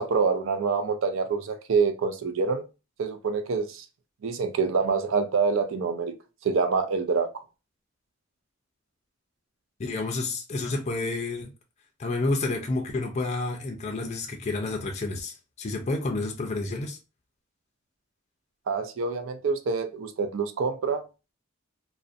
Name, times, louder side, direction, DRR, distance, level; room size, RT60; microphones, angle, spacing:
voice 1, 0.0-2.6 3.0-3.8 4.2-6.1 6.4-7.3 18.7-21.0, right 5 dB, 75° right, 0.4 m, -26 dB
voice 2, 9.8-11.5 12.0-17.0, left 2 dB, 35° left, 0.4 m, -30 dB
2.4 x 2.1 x 2.5 m
head